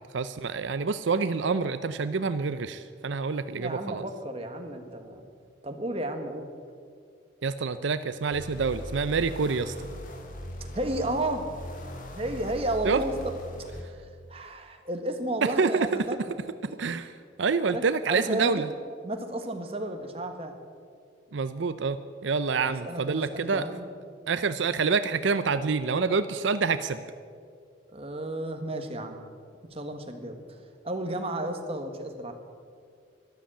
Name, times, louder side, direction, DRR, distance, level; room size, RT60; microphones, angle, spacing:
voice 1, 0.1-4.0 7.4-9.7 12.8-13.0 15.6-15.9 16.6-17.1 17.4-18.7 21.3-22.0 22.2-23.7 24.3-27.0, right 5 dB, 75° right, 12 dB, 0.5 m, -27 dB
voice 2, 3.4-5.3 5.6-6.5 10.7-11.4 12.1-13.3 13.6-13.9 14.3-16.4 16.6-16.8 17.6-18.5 19.0-20.5 22.5-23.9 27.9-29.2 29.7-30.4 30.8-32.3, right 1 dB, 30° right, 5 dB, 1.5 m, -33 dB
sound 1, 8.3-13.8, left 1 dB, 45° left, 1.9 m, -40 dB
13.0 x 12.5 x 8.8 m, 2.2 s
head